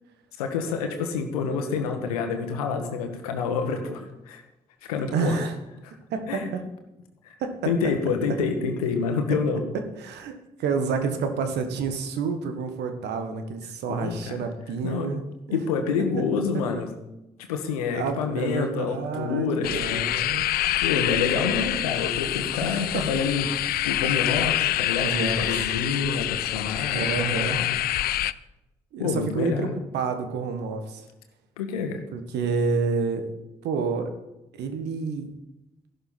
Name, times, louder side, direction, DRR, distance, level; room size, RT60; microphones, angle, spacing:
voice 1, 0.4-4.4 4.8-5.4 5.8-5.9 6.3-6.5 7.2-7.3 7.6-9.6 13.9-14.5 14.8-15.1 15.5-16.9 17.5-20.0 20.8-23.5 23.8-27.7 29.0-29.7 31.6-32.0, left 5 dB, 80° left, 6 dB, 1.4 m, -28 dB
voice 2, 5.1-5.5 6.1-6.6 7.4-7.7 10.0-15.2 15.5-15.6 17.9-20.4 22.6-23.0 25.0-25.4 26.9-27.6 28.9-29.7 29.9-31.0 32.1-33.4 33.6-34.1 34.6-35.3, right 5 dB, 65° right, 7 dB, 1.6 m, -29 dB
sound 1, 19.6-28.3, left 14 dB, 55° left, 0.5 m, -26 dB
14.5 x 11.5 x 4.4 m, 0.93 s
figure-of-eight pair, 40°, 19 cm